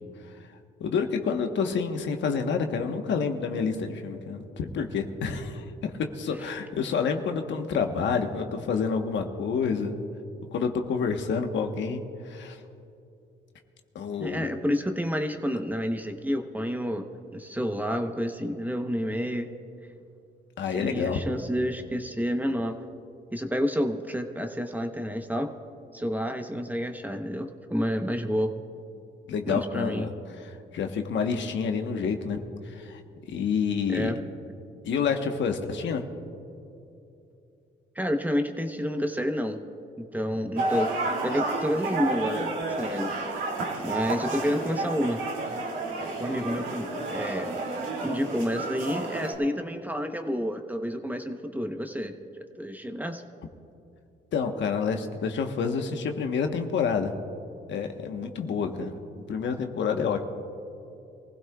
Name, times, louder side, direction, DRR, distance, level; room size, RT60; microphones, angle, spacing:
voice 1, 0.8-10.0 10.5-12.6 13.9-14.6 20.6-21.2 29.3-33.0 33.3-34.1 34.8-36.0 54.3-57.1 57.7-60.2, left 5 dB, 70° left, 5 dB, 1.2 m, -28 dB
voice 2, 14.2-17.0 17.3-19.5 20.7-22.8 23.3-25.5 25.9-28.5 29.5-30.1 33.9-34.2 38.0-39.6 40.0-40.9 41.2-42.5 42.8-43.1 43.8-45.2 46.2-47.5 48.0-53.2, equal, 10° right, 5 dB, 0.9 m, -29 dB
sound 1, 40.6-49.3, right 2 dB, 80° right, 2.6 m, -31 dB
25.0 x 16.0 x 2.4 m, 2.8 s
cardioid pair, 90°, 20 cm